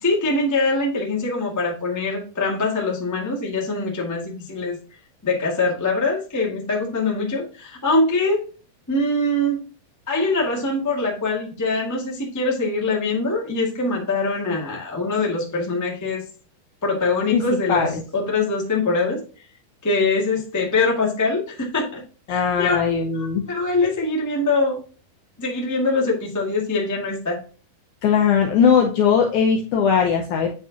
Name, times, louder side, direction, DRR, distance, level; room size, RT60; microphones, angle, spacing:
voice 1, 0.0-4.8 5.2-8.4 8.9-9.6 10.1-16.2 16.8-19.2 19.8-22.0 22.3-22.8 23.1-24.8 25.4-27.4, left 3 dB, 15° left, -3 dB, 0.5 m, -23 dB
voice 2, 17.7-18.0 22.3-23.4 28.0-30.5, left 7 dB, 75° left, 2 dB, 1.8 m, -19 dB
9.3 x 4.8 x 2.8 m, 0.38 s
omnidirectional pair, 4.3 m